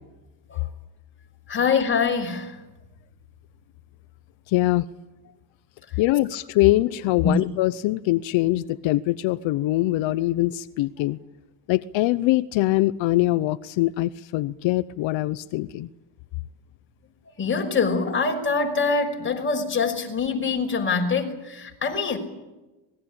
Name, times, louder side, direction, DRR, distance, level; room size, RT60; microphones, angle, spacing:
voice 1, 1.5-2.6 7.2-7.3 17.4-22.2, left 5 dB, 25° left, 3 dB, 5.6 m, -24 dB
voice 2, 4.5-4.8 6.0-11.2 11.7-15.9, left 17 dB, 80° left, 13 dB, 0.9 m, -23 dB
26.0 x 20.5 x 8.8 m, 1.1 s
cardioid pair, 135°, 45 cm